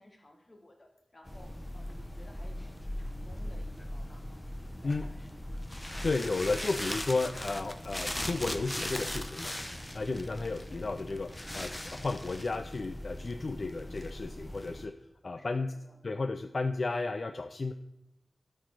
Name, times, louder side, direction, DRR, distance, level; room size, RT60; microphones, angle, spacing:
voice 1, 0.0-5.7 15.4-16.0, left 1 dB, 40° left, 2 dB, 1.4 m, -57 dB
sound 1, 1.3-14.9, left 1 dB, 20° left, 0.8 m, -39 dB
voice 2, 6.0-9.6 9.9-14.9 15.2-15.7 16.0-17.7, left 3 dB, 65° left, 8 dB, 0.4 m, -33 dB
12.5 x 4.4 x 4.5 m, 0.88 s
wide cardioid pair, 70°, 0 cm